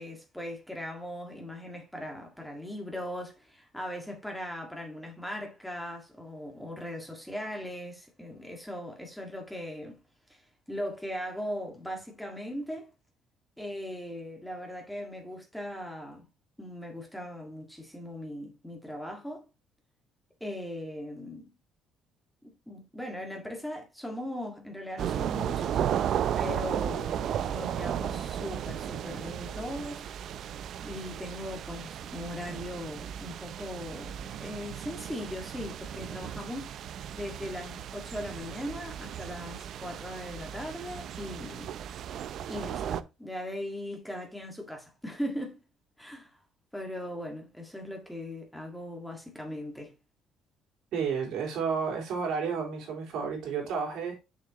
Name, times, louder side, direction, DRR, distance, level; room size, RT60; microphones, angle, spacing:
voice 1, 0.0-10.0 10.3-10.4 10.7-12.9 13.6-16.2 16.6-19.5 20.4-21.5 22.4-25.8 26.4-30.0 30.8-36.7 37.1-41.7 42.5-45.6 46.0-46.4 46.7-49.9, left 1 dB, 5° left, 1.7 m, -39 dB
sound 1, 25.0-43.0, right 9 dB, 55° right, 0.5 m, -35 dB
voice 2, 50.9-54.2, right 6 dB, 75° right, 3.8 m, -31 dB
6.6 x 6.6 x 2.9 m
cardioid pair, 140°, 0 cm